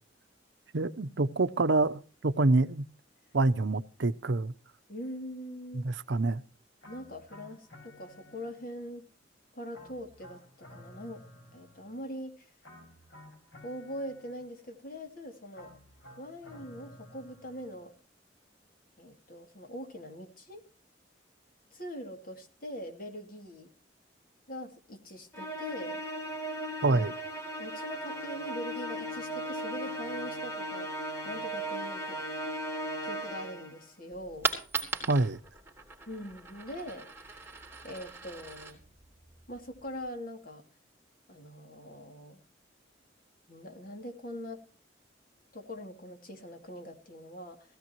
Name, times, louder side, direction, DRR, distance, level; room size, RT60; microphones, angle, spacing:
voice 1, 0.7-2.8 3.3-4.5 5.8-6.4 26.8-27.1 35.1-35.4, right 2 dB, 75° right, 0.8 m, -26 dB
voice 2, 4.9-5.9 6.9-9.1 9.5-11.2 11.5-12.5 13.6-15.7 16.2-17.9 19.0-20.7 21.7-23.7 24.5-26.0 26.9-27.1 27.6-32.2 32.8-34.5 36.1-38.8 39.5-40.6 41.3-42.4 43.5-44.7 45.5-47.8, equal, 50° left, 2.7 m, -43 dB
sound 1, 6.8-8.9 9.7-12.1 12.6-14.7 15.5-17.9, left 1 dB, 75° left, 6.1 m, -53 dB
Musical instrument, 25.3-33.8, right 1 dB, 15° left, 2.5 m, -37 dB
Coin (dropping), 34.1-40.1, right 4 dB, 15° right, 3.1 m, -39 dB
17.0 x 16.0 x 3.0 m
head